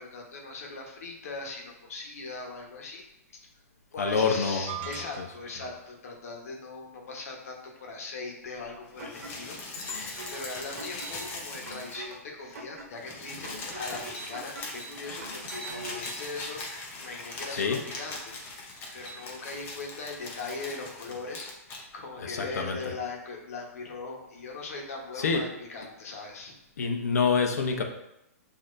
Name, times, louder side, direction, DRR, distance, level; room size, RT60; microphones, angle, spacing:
voice 1, 0.0-3.0 3.3-3.5 3.9-18.3 18.9-26.6, left 3 dB, 70° left, 0 dB, 1.1 m, -40 dB
voice 2, 4.0-4.9 5.2-5.3 17.5-17.8 22.2-22.9 25.1-25.5 26.8-27.8, left 5 dB, 85° left, 4 dB, 0.8 m, -27 dB
sound 1, 4.7-5.6, right 14 dB, 40° right, 0.4 m, -40 dB
sound 2, 8.9-12.2 12.5-12.6 12.8-21.8 22.8-22.9, left 2 dB, 25° left, 0.8 m, -40 dB
sound 3, 9.0-16.1, right 1 dB, 85° right, 1.0 m, -45 dB
6.5 x 2.8 x 2.6 m, 0.85 s
hypercardioid pair, 145°, 8 cm